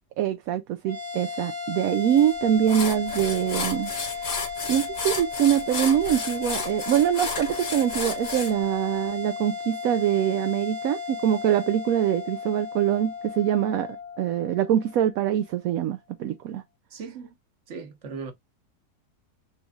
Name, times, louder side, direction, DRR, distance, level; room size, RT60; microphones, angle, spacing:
voice 1, 0.2-4.3 4.7-16.6, right 10 dB, 70° right, 0.9 m, -24 dB
sound 1, 0.8-15.4, left 5 dB, 15° right, 1.2 m, -35 dB
sound 2, 2.2-2.3 2.7-8.5, left 4 dB, 55° left, 2.0 m, -32 dB
voice 2, 16.9-17.3 17.7-18.3, right 5 dB, 50° right, 1.3 m, -37 dB
6.2 x 3.1 x 2.3 m
omnidirectional pair, 1.8 m